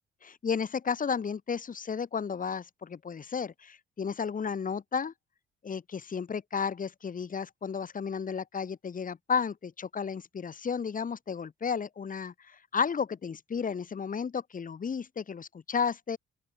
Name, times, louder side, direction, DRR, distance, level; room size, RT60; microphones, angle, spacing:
voice 1, 0.2-5.1 5.6-16.2, left 6 dB, 45° left, 5.1 m, -33 dB
open air
cardioid pair, 90°, 20 cm